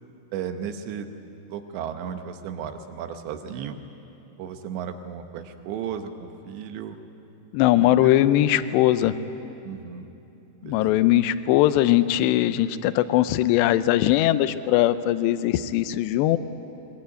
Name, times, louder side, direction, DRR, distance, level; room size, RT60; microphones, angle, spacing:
voice 1, 0.3-1.1 1.5-3.8 4.4-7.0 7.7-8.2 9.6-10.1 10.6-11.1, right 8 dB, 75° right, 7 dB, 3.3 m, -35 dB
voice 2, 7.5-9.1 10.6-16.4, left 14 dB, 80° left, 13 dB, 2.7 m, -20 dB
21.0 x 20.5 x 9.1 m, 2.9 s
omnidirectional pair, 5.3 m